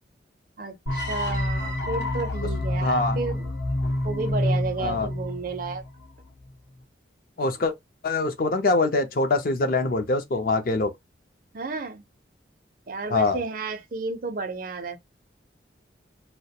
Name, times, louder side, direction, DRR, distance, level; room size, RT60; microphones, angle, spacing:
voice 1, 0.6-3.5 4.0-5.8 11.5-12.0 12.9-15.0, right 3 dB, 50° right, 0.4 m, -32 dB
sound 1, 0.9-6.0, left 1 dB, 70° left, 0.8 m, -28 dB
voice 2, 2.8-3.2 4.8-5.1 7.4-7.7 8.0-10.9 13.1-13.4, left 3 dB, 50° left, 0.4 m, -24 dB
2.2 x 2.1 x 2.7 m
head